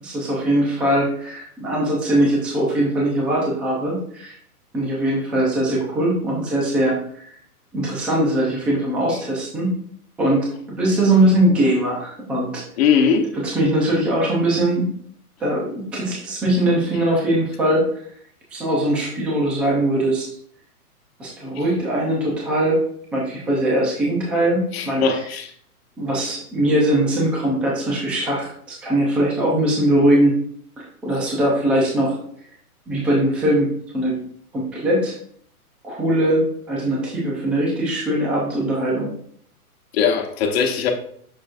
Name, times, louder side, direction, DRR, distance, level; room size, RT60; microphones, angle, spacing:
voice 1, 0.0-4.4 4.7-7.0 7.3-7.4 7.7-9.8 10.2-12.6 13.4-14.9 15.4-17.8 18.5-20.3 21.2-22.8 23.1-25.0 26.0-30.4 30.8-32.2 32.9-34.2 34.5-35.2 35.8-39.1, right 1 dB, 5° right, -3 dB, 0.5 m, -21 dB
voice 2, 12.8-13.3 24.7-25.5 39.9-40.9, left 6 dB, 40° left, 4 dB, 1.2 m, -20 dB
8.4 x 6.2 x 2.6 m, 0.62 s
hypercardioid pair, 145°, 45 cm